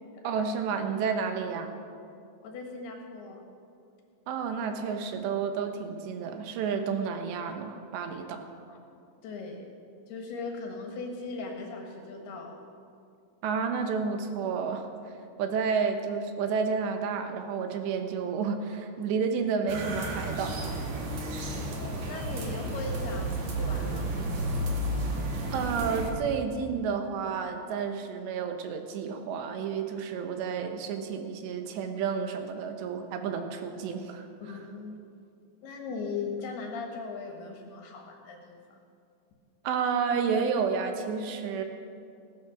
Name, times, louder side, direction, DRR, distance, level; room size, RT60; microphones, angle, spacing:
voice 1, 0.2-1.8 4.3-8.5 13.4-14.9 15.4-20.8 25.5-34.3 39.6-41.6, right 6 dB, 75° right, 6 dB, 2.9 m, -30 dB
voice 2, 2.4-3.4 8.7-8.8 9.2-9.7 10.1-12.6 21.5-24.6 34.4-35.0 35.6-38.8, left 4 dB, 65° left, 2 dB, 3.0 m, -39 dB
sound 1, 19.7-26.1, right 1 dB, 55° right, 2.1 m, -32 dB
17.5 x 12.5 x 5.9 m, 2.4 s
omnidirectional pair, 5.6 m